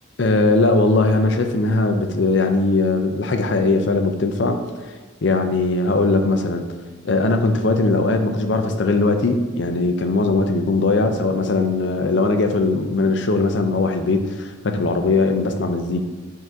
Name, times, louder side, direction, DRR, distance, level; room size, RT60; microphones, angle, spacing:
voice 1, 0.2-4.6 5.2-6.7 7.0-16.1, left 3 dB, 60° left, 6 dB, 0.6 m, -19 dB
10.5 x 3.8 x 2.7 m, 1.4 s
head